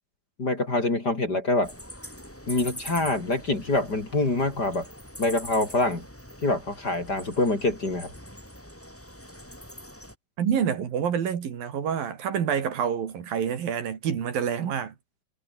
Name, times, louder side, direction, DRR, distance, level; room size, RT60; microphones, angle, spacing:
voice 1, 0.4-1.7 2.5-4.9 5.2-6.0 6.4-8.1, left 2 dB, 25° left, 4.1 m, -25 dB
sound 1, 1.6-10.2, equal, 5° left, 5.4 m, -43 dB
voice 2, 10.4-14.9, right 8 dB, 70° right, 4.4 m, -27 dB
omnidirectional pair, 4.2 m